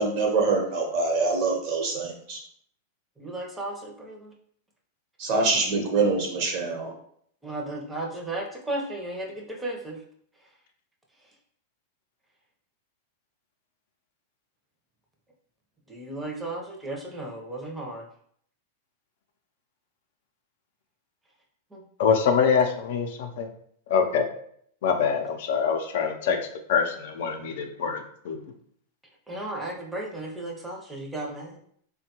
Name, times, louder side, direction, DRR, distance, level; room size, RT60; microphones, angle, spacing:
voice 1, 0.0-2.4 5.2-6.9, right 3 dB, 50° right, 1 dB, 0.9 m, -25 dB
voice 2, 3.2-4.3 7.4-10.0 15.9-18.0 21.7-21.8 26.2-26.3 29.3-31.6, right 2 dB, 5° right, -1 dB, 0.7 m, -34 dB
voice 3, 22.0-23.5 23.9-24.3 24.8-26.4 26.7-28.4, left 6 dB, 70° left, 4 dB, 0.5 m, -24 dB
3.5 x 2.2 x 2.9 m, 0.64 s
supercardioid pair, 135°, 0 cm